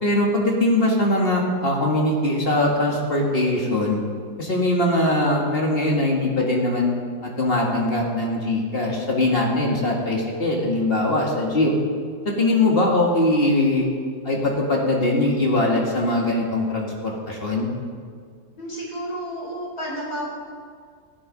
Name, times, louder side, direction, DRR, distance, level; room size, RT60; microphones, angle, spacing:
voice 1, 0.0-4.0 4.4-6.9 7.2-11.7 12.3-13.9 14.2-17.7, left 1 dB, 35° left, -1 dB, 2.0 m, -21 dB
voice 2, 18.6-20.3, equal, 70° left, -4 dB, 4.7 m, -31 dB
14.5 x 9.3 x 5.2 m, 2.1 s
omnidirectional pair, 1.7 m